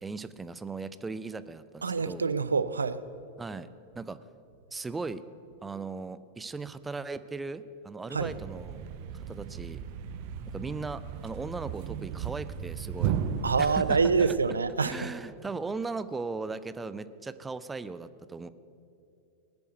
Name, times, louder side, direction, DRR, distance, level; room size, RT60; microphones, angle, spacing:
voice 1, 0.0-2.3 3.4-3.7 4.0-4.2 4.7-5.2 5.6-8.8 9.1-9.8 10.5-13.2 13.6-14.4 14.8-18.5, right 4 dB, 10° right, 14 dB, 0.5 m, -38 dB
voice 2, 1.8-3.0 8.1-8.3 13.4-15.0, right 5 dB, 75° right, 14 dB, 0.4 m, -26 dB
Thump thud, 8.1-14.3, right 8 dB, 50° right, 0.8 m, -35 dB
19.5 x 7.0 x 7.9 m, 2.6 s
figure-of-eight pair, 90°, 0 cm